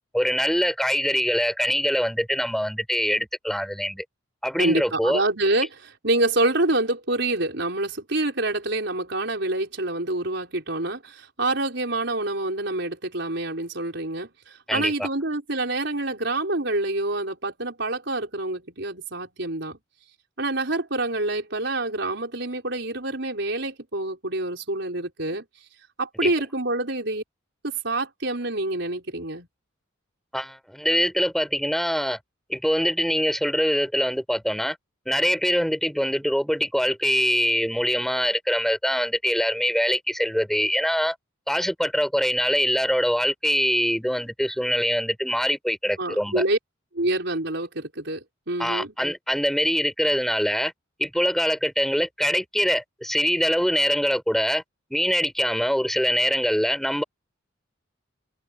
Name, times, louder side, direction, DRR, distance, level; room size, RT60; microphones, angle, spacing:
voice 1, 0.1-4.0 4.4-5.2 14.7-15.1 26.2-26.3 30.3-32.2 32.5-34.8 35.1-41.2 41.5-46.4 48.6-50.7 51.0-54.6 54.9-57.0, equal, ahead, 6.0 m, -23 dB
voice 2, 4.6-19.8 20.4-25.5 26.0-27.2 27.6-29.5 46.0-46.6 46.9-48.9, right 2 dB, 60° right, 5.4 m, -27 dB
head